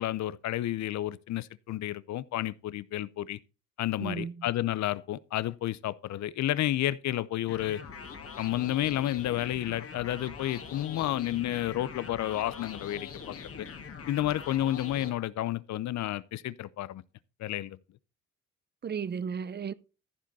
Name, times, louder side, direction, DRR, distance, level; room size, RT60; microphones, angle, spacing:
voice 1, 0.0-3.4 3.8-7.8 8.4-13.7 14.1-17.0 17.4-17.8, left 13 dB, 65° left, 0.6 m, -31 dB
voice 2, 4.0-4.5 18.8-19.7, right 6 dB, 35° right, 0.7 m, -34 dB
sound 1, 7.5-15.1, left 6 dB, 50° left, 1.9 m, -43 dB
14.5 x 5.2 x 4.1 m
cardioid pair, 90°, 30 cm